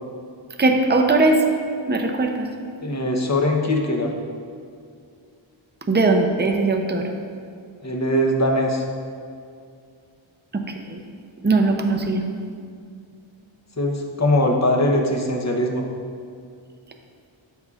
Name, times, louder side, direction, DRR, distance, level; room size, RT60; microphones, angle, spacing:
voice 1, 0.6-1.4 1.9-2.5 5.9-7.1 10.5-11.0 11.4-12.2, right 3 dB, 20° right, 3 dB, 0.6 m, -20 dB
voice 2, 2.8-4.1 7.8-8.8 13.8-15.8, left 1 dB, 35° left, 1 dB, 0.9 m, -21 dB
13.0 x 5.4 x 2.4 m, 2.3 s
wide cardioid pair, 90°, 49 cm